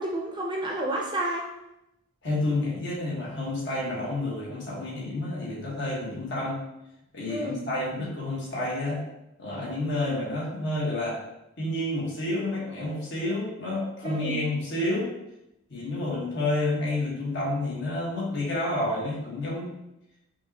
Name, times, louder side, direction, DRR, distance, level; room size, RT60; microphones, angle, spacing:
voice 1, 0.0-1.5 7.2-7.6 14.0-14.4, right 1 dB, 20° right, -1 dB, 0.5 m, -30 dB
voice 2, 2.2-6.6 7.1-9.0 9.4-11.2 11.6-15.1 15.7-19.7, left 2 dB, 55° left, -5 dB, 1.3 m, -29 dB
5.1 x 3.0 x 2.8 m, 0.88 s
head